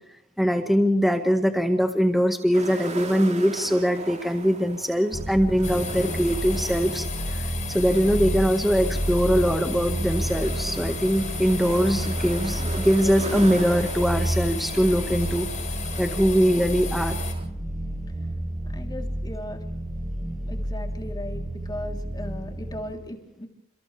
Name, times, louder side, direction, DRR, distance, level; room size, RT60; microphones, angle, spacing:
voice 1, 0.4-15.5 16.0-17.2, equal, ahead, 5 dB, 1.6 m, -22 dB
sound 1, 2.5-17.4, right 2 dB, 35° right, 3.5 m, -39 dB
sound 2, 5.1-22.9, right 1 dB, 20° right, 3.9 m, -30 dB
sound 3, 5.6-17.3, left 6 dB, 35° left, 6.9 m, -36 dB
voice 2, 18.7-19.6 20.5-23.5, left 1 dB, 20° left, 3 dB, 3.5 m, -37 dB
30.0 x 28.5 x 3.4 m, 0.76 s
head